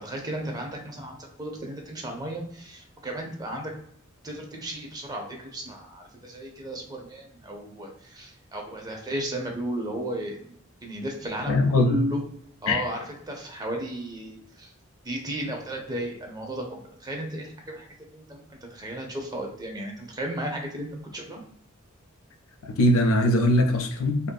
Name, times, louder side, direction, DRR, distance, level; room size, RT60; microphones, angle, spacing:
voice 1, 0.0-3.7 4.2-10.4 10.8-12.2 12.6-14.7 15.0-17.9 18.1-21.4, right 1 dB, 20° right, 1 dB, 0.5 m, -34 dB
voice 2, 11.5-12.0 12.7-12.8 22.6-24.3, left 1 dB, 70° left, 6 dB, 0.4 m, -21 dB
2.6 x 2.5 x 2.2 m, 0.67 s
head